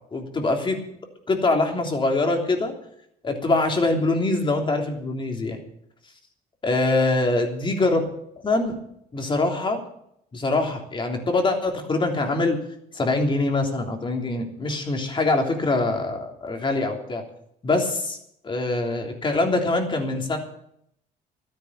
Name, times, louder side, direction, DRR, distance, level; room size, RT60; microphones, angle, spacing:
voice 1, 0.1-0.8 1.3-2.7 3.2-5.6 6.6-8.0 8.4-8.8 9.1-9.8 10.3-12.6 12.9-17.2 17.6-18.2 18.4-20.4, left 2 dB, 30° left, 3 dB, 3.4 m, -23 dB
13.0 x 10.5 x 8.9 m, 0.74 s
cardioid pair, 110°, 17 cm